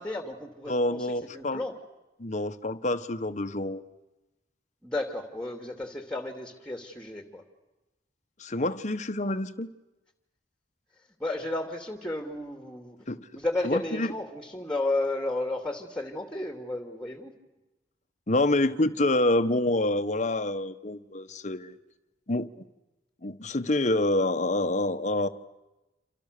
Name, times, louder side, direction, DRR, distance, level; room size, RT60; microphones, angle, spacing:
voice 1, 0.0-1.7 4.8-7.4 11.2-13.0 13.3-17.3, left 2 dB, 5° left, 2.8 m, -33 dB
voice 2, 0.7-1.6 2.2-3.8 8.4-9.7 13.1-13.2 13.6-14.1 18.3-21.8 22.3-22.5 23.2-25.3, left 2 dB, 40° left, 1.2 m, -27 dB
28.5 x 27.5 x 6.8 m
head